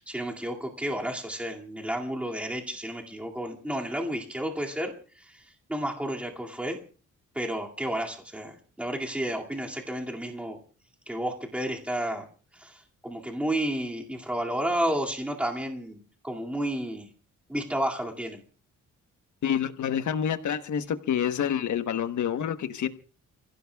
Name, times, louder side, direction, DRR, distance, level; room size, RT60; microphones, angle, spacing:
voice 1, 0.0-5.4 5.7-6.8 7.3-10.6 11.1-12.3 12.5-17.1 17.5-18.4, right 1 dB, 5° right, -1 dB, 2.3 m, -31 dB
voice 2, 19.4-22.9, left 9 dB, 75° left, 10 dB, 1.2 m, -28 dB
30.0 x 16.0 x 2.3 m, 0.38 s
wide cardioid pair, 135°, 30 cm